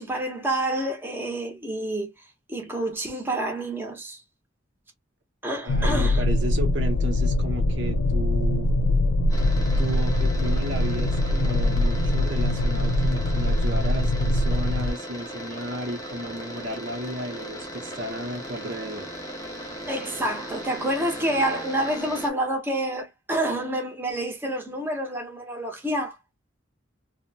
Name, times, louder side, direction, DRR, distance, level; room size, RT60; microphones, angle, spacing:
voice 1, 0.0-4.2 5.4-6.2 19.9-26.2, right 1 dB, 10° right, 0.7 m, -28 dB
voice 2, 5.6-8.7 9.8-19.1, equal, 65° right, 0.8 m, -33 dB
sound 1, 5.7-14.9, left 1 dB, 70° left, 0.3 m, -23 dB
sound 2, 9.3-22.3, equal, 20° left, 1.0 m, -38 dB
2.7 x 2.1 x 2.7 m
head